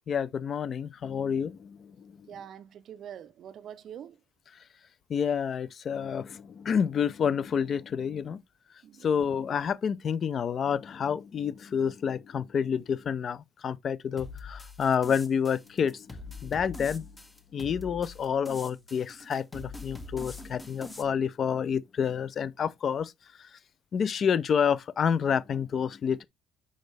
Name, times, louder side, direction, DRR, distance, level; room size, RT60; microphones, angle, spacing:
voice 1, 0.1-2.1 5.1-8.4 9.0-16.1 16.4-17.1 17.5-23.1 23.4-23.5 23.9-26.2, left 7 dB, 35° left, 0.4 m, -29 dB
voice 2, 2.3-4.2 8.8-9.2, right 9 dB, 40° right, 0.5 m, -44 dB
sound 1, 14.2-21.0, left 3 dB, 10° left, 0.7 m, -44 dB
6.3 x 5.1 x 3.3 m
cardioid pair, 175°, 0 cm